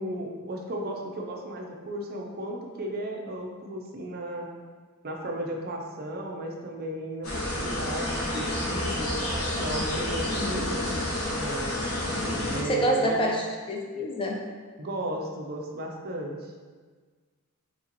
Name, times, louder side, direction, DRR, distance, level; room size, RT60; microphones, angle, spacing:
voice 1, 0.0-4.5 5.0-9.1 9.6-11.7 12.5-13.2 14.8-16.5, right 1 dB, 45° right, 1 dB, 0.5 m, -35 dB
sound 1, 7.2-12.6, left 1 dB, 80° left, 1.1 m, -29 dB
voice 2, 12.6-13.4 13.7-14.4, equal, 25° left, 0 dB, 0.4 m, -26 dB
5.3 x 2.9 x 2.9 m, 1.5 s
head